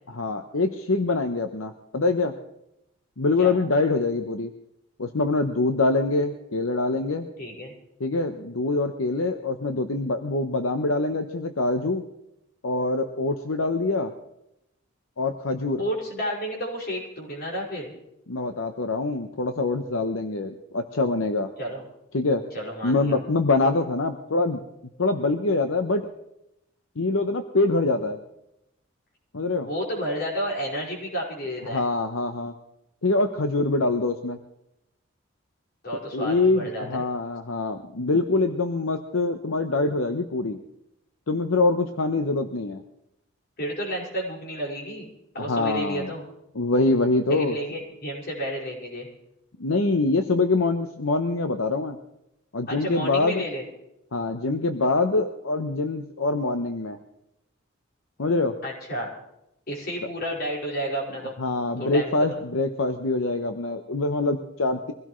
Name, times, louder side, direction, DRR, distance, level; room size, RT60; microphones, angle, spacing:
voice 1, 0.1-2.3 3.2-4.5 5.0-7.3 8.0-12.0 12.6-14.1 15.2-15.8 18.3-21.5 22.1-22.4 22.8-24.6 25.0-26.1 27.0-28.2 29.3-29.7 31.7-32.5 33.0-34.4 36.1-40.6 41.3-42.8 45.4-46.1 46.5-47.6 49.6-52.0 52.5-53.4 54.1-57.0 58.2-58.5 61.4-64.9, left 3 dB, 80° left, 7 dB, 0.9 m, -24 dB
voice 2, 7.4-7.7 15.8-17.9 21.6-21.8 22.5-23.2 29.6-31.8 35.8-37.0 43.6-45.1 45.3-46.2 47.3-49.1 52.7-53.6 58.6-59.1 59.7-61.3 61.7-62.1, equal, 50° left, -3 dB, 5.4 m, -31 dB
23.5 x 16.5 x 3.2 m, 0.83 s
head